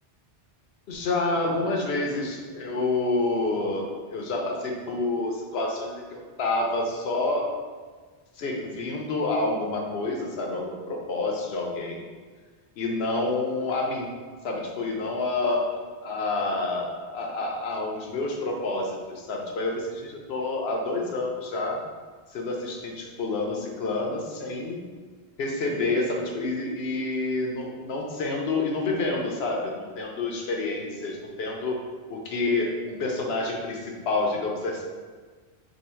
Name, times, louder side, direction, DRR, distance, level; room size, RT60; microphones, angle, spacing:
voice 1, 0.9-7.5 8.4-12.0 12.8-14.1 14.4-15.7 16.0-21.8 22.3-24.8 25.4-31.8 32.1-34.8, left 2 dB, 80° left, 0 dB, 0.9 m, -28 dB
2.8 x 2.7 x 4.2 m, 1.5 s
omnidirectional pair, 1.0 m